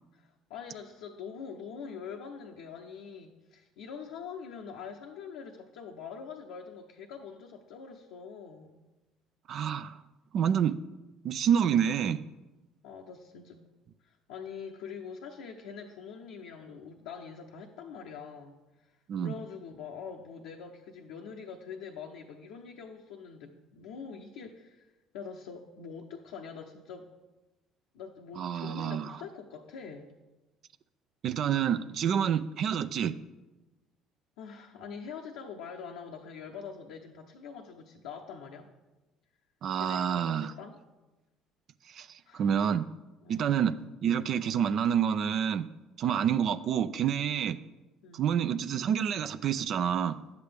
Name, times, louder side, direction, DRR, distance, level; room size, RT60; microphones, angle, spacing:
voice 1, 0.1-8.8 12.8-13.6 14.0-18.9 19.2-27.1 27.9-30.1 34.4-38.7 39.8-40.8 42.3-42.4 43.2-43.4 46.0-46.3 48.0-48.3, left 6 dB, 75° left, 0 dB, 0.7 m, -44 dB
voice 2, 9.5-10.0 10.3-10.8 11.2-12.2 19.1-19.3 28.4-29.2 31.2-33.2 39.6-40.5 41.9-42.9 43.3-45.7 46.0-47.6 48.1-50.2, right 8 dB, 55° right, 12 dB, 0.4 m, -28 dB
10.5 x 8.1 x 3.4 m, 1.1 s
hypercardioid pair, 60°, 0 cm